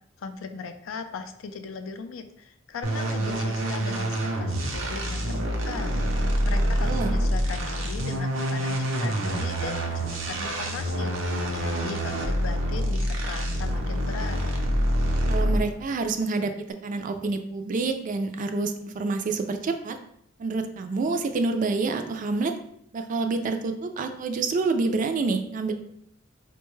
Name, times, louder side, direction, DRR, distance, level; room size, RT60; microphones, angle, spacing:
voice 1, 0.2-5.9 6.5-14.4, left 5 dB, 90° left, 8 dB, 0.4 m, -38 dB
sound 1, 2.8-15.8, equal, 90° right, 0.6 m, -26 dB
voice 2, 6.8-7.1 15.3-16.5 16.8-20.0 20.4-22.6 22.9-25.7, right 3 dB, 40° right, 7 dB, 0.3 m, -27 dB
4.3 x 2.2 x 3.1 m, 0.71 s
head